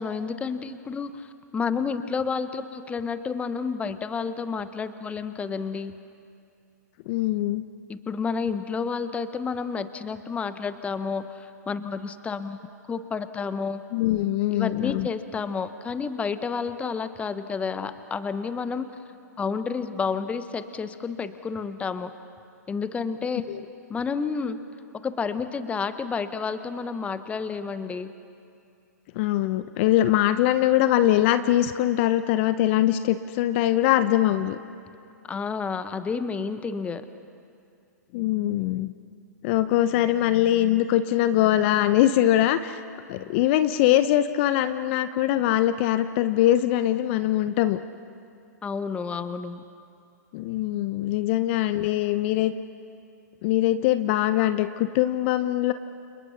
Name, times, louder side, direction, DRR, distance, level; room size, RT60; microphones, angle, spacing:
voice 1, 0.0-5.9 7.9-12.6 12.9-13.8 14.5-18.9 19.4-22.1 22.7-23.4 23.9-24.6 25.0-28.1 35.3-37.1 48.6-49.6, left 5 dB, 15° left, 11 dB, 1.1 m, -30 dB
voice 2, 7.1-7.6 13.9-15.1 23.5-23.6 29.1-34.6 38.1-38.9 39.4-42.8 43.1-47.8 50.3-52.5 53.4-55.7, left 13 dB, 40° left, 11 dB, 0.8 m, -22 dB
29.5 x 28.5 x 5.8 m, 2.5 s
figure-of-eight pair, 115°, 9 cm